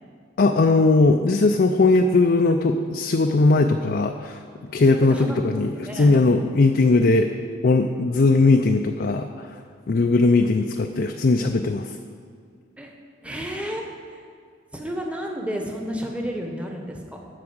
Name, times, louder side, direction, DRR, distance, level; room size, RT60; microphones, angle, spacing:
voice 1, 0.4-4.4 4.7-7.3 7.6-9.6 9.9-12.0, left 3 dB, 50° left, 5 dB, 0.4 m, -19 dB
voice 2, 5.0-5.4 5.9-6.4 12.8-12.9 13.2-13.8 14.1-14.3 14.7-17.2, equal, 5° right, 1 dB, 1.1 m, -31 dB
13.0 x 4.8 x 7.9 m, 2.1 s
head